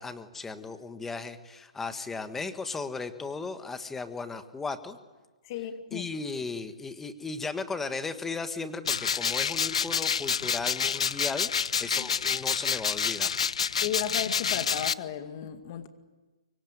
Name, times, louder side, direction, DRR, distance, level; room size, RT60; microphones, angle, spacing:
voice 1, 0.0-5.0 5.9-13.4, left 4 dB, 10° left, 1.5 m, -36 dB
voice 2, 5.4-6.1 13.8-15.9, left 10 dB, 40° left, 2.1 m, -34 dB
sound 1, 8.8-14.9, left 6 dB, 80° left, 0.8 m, -28 dB
25.0 x 22.0 x 9.5 m
hypercardioid pair, 155°, 3 cm